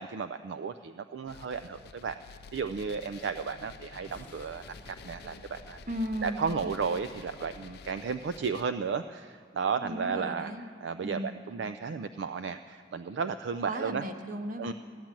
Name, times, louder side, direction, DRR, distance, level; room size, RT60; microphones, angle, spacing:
voice 1, 0.0-2.2 2.5-5.8 6.2-10.5 10.8-14.0 14.6-14.7, right 5 dB, 65° right, 10 dB, 0.4 m, -34 dB
sound 1, 1.3-8.6, left 6 dB, 55° left, 0.4 m, -50 dB
sound 2, 3.9-8.4, left 1 dB, 10° left, 0.8 m, -54 dB
voice 2, 5.9-6.5 9.8-10.6 11.0-11.5 13.6-14.7, equal, 45° right, 6 dB, 1.0 m, -36 dB
15.0 x 10.5 x 7.5 m, 2.1 s
head